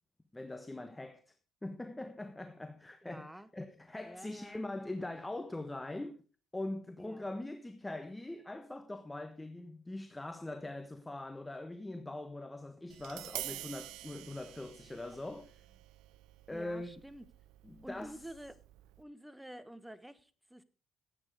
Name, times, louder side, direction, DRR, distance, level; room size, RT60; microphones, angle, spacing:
voice 1, 0.3-1.3 1.6-6.2 6.5-15.6 16.5-16.9 17.6-18.2, left 2 dB, 15° left, 1.2 m, -42 dB
voice 2, 3.0-3.5 4.0-4.7 7.0-7.5 13.5-13.7 15.3-15.4 16.5-17.2 17.8-18.6 19.0-20.6, right 1 dB, 5° right, 1.4 m, -50 dB
Tap, 12.9-19.0, right 15 dB, 85° right, 0.6 m, -48 dB
14.0 x 8.9 x 5.0 m
supercardioid pair, 70°, 0 cm